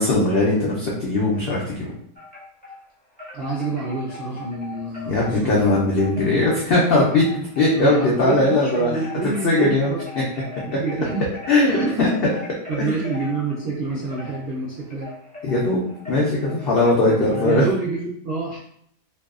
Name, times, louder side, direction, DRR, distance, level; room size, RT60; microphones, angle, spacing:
voice 1, 0.0-1.9 5.1-8.9 9.4-9.9 11.5-12.1 12.8-13.0 15.4-17.6, left 2 dB, 90° left, -4 dB, 0.5 m, -19 dB
Wind chime, 2.2-2.8 3.2-17.7, left 2 dB, 10° left, 0.4 m, -40 dB
voice 2, 3.3-5.6 7.8-9.7 10.8-11.3 11.6-12.1 12.7-15.1 17.0-18.6, right 3 dB, 70° right, -6 dB, 0.5 m, -27 dB
2.6 x 2.2 x 2.3 m, 0.68 s
omnidirectional pair, 1.6 m